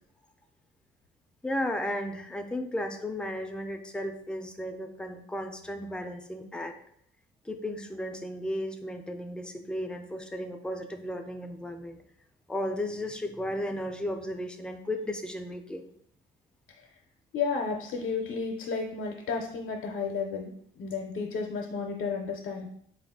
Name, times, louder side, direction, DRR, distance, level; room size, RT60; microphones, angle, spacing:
voice 1, 1.4-6.8 7.4-12.0 12.5-15.9, left 1 dB, 5° left, 5 dB, 0.4 m, -34 dB
voice 2, 17.3-20.5 20.8-22.7, left 5 dB, 70° left, 1 dB, 0.5 m, -32 dB
3.5 x 2.4 x 3.5 m, 0.68 s
cardioid pair, 90°, 20 cm